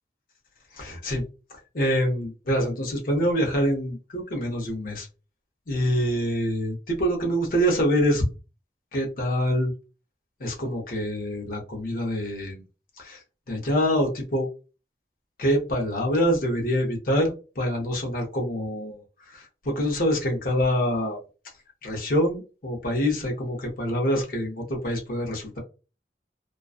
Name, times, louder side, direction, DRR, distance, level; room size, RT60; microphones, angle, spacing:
voice 1, 0.7-1.2 1.7-5.1 5.7-8.2 8.9-9.7 10.4-12.6 13.0-14.5 15.4-19.0 19.3-21.2 21.8-25.6, equal, 50° left, 0 dB, 0.7 m, -25 dB
2.4 x 2.2 x 2.4 m, 0.32 s
head